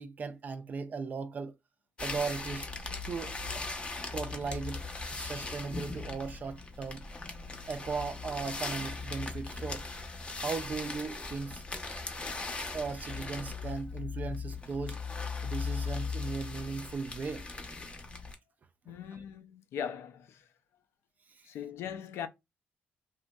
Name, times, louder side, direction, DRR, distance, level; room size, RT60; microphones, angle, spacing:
voice 1, 0.0-1.6 2.0-2.7 3.1-3.6 4.1-4.8 5.1-7.0 7.7-9.8 10.4-11.6 12.7-15.0 15.4-17.5 18.9-19.2 21.3-21.5, right 4 dB, 40° right, 0.3 m, -37 dB
sound 1, 2.0-18.3, left 4 dB, 25° left, 0.6 m, -39 dB
voice 2, 18.9-20.5 21.4-22.3, left 8 dB, 80° left, 0.4 m, -40 dB
2.9 x 2.6 x 2.2 m
cardioid pair, 110°, 4 cm